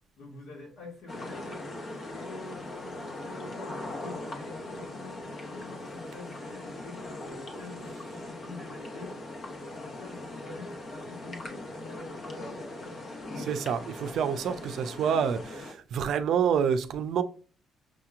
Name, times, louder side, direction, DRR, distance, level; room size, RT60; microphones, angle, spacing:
voice 1, 0.2-1.5 2.1-2.4 3.1-9.2 9.7-13.5, left 3 dB, 75° left, 1.9 m, -46 dB
sound 1, 1.1-15.7, left 2 dB, 50° left, 1.1 m, -40 dB
voice 2, 13.5-17.2, right 7 dB, 75° right, 0.4 m, -28 dB
6.1 x 2.9 x 2.4 m
cardioid pair, 90°, 0 cm